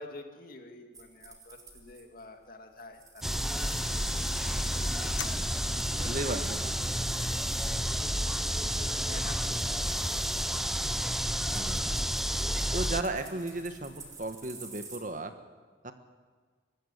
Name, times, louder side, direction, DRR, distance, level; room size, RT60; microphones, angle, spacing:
voice 1, 0.0-4.4 5.4-6.8 7.1-8.2 8.6-10.7 10.9-11.2 11.9-12.1, left 2 dB, 45° left, 4 dB, 2.4 m, -49 dB
sound 1, 0.9-2.5 2.8-6.4 6.7-8.0 8.3-8.4 8.8-15.0, right 4 dB, 20° right, 2.7 m, -51 dB
sound 2, 3.2-13.0, equal, ahead, 0.6 m, -30 dB
sound 3, 3.6-14.6, left 7 dB, 70° left, 1.3 m, -47 dB
voice 2, 6.1-6.7 11.5-11.9 12.7-15.3 15.8-15.9, right 2 dB, 40° right, 8 dB, 1.4 m, -35 dB
24.0 x 14.0 x 9.9 m, 1.5 s
head